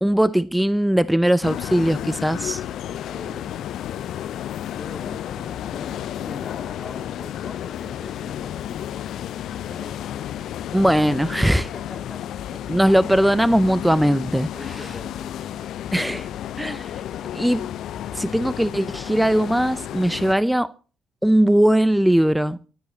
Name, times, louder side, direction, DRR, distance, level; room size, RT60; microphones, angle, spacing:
voice 1, 0.0-2.6 10.7-11.7 12.7-14.5 15.9-16.3 16.6-16.9 17.3-17.7 18.1-20.7 21.2-22.6, right 1 dB, 5° right, 0.6 m, -19 dB
sound 1, 1.4-20.3, left 11 dB, 60° left, 0.7 m, -32 dB
voice 2, 2.9-3.5 4.8-9.3 9.7-10.1 11.7-12.2 14.5-15.3, left 2 dB, 10° left, 3.2 m, -42 dB
27.5 x 11.5 x 2.9 m
figure-of-eight pair, 45°, 0 cm